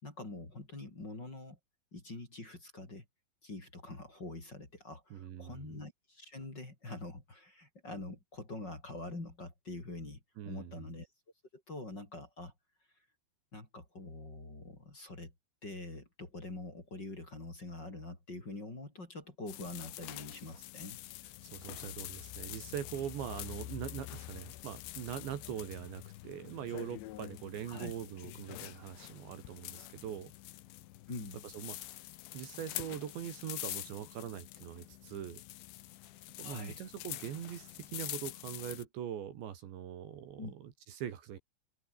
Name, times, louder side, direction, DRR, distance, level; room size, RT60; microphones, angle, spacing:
voice 1, 0.0-1.6 1.9-3.0 3.4-10.2 10.4-11.1 11.5-12.5 13.5-15.3 15.6-21.0 27.7-27.9 31.1-31.4 36.4-36.8 40.4-40.5, left 2 dB, 20° left, 5.0 m, -45 dB
voice 2, 5.1-5.7 10.4-10.9 21.4-30.3 31.4-31.9 32.3-35.4 36.4-41.4, right 9 dB, 65° right, 4.3 m, -42 dB
beaded curtain, 19.5-38.8, left 16 dB, 70° left, 3.1 m, -46 dB
open air
omnidirectional pair, 5.8 m